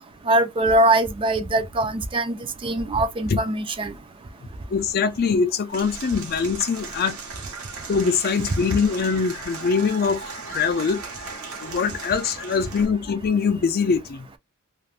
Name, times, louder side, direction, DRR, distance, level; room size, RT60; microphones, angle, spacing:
voice 1, 0.3-3.9, right 1 dB, 25° right, 0.3 m, -22 dB
voice 2, 4.7-7.2 7.9-11.0 11.6-14.3, left 5 dB, 45° left, 0.4 m, -23 dB
Applause / Crowd, 5.7-12.9, right 4 dB, 80° right, 0.9 m, -37 dB
2.4 x 2.1 x 3.2 m
head